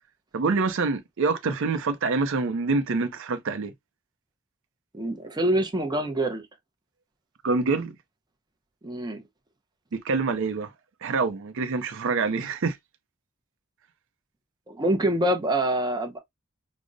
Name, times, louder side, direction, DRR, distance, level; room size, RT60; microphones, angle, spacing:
voice 1, 0.3-3.7 7.4-7.9 9.9-10.7 11.0-12.8, right 4 dB, 65° right, 0.5 m, -26 dB
voice 2, 4.9-6.4 8.8-9.2 14.7-16.2, right 1 dB, 20° right, 0.6 m, -25 dB
5.0 x 2.0 x 2.5 m
head